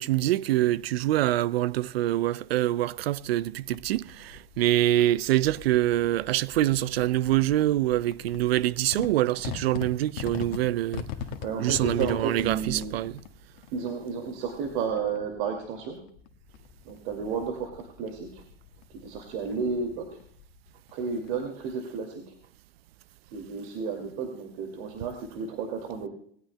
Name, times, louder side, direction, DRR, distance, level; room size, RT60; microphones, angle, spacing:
voice 1, 0.0-11.1 11.6-13.1, right 14 dB, 75° right, 0.6 m, -25 dB
sound 1, 3.6-21.8, left 8 dB, 50° left, 1.6 m, -43 dB
voice 2, 11.4-13.0 13.7-16.0 16.8-18.4 19.0-20.1 20.9-22.2 23.3-26.1, right 5 dB, 55° right, 2.5 m, -32 dB
20.0 x 17.0 x 2.2 m
hypercardioid pair, 130°, 30 cm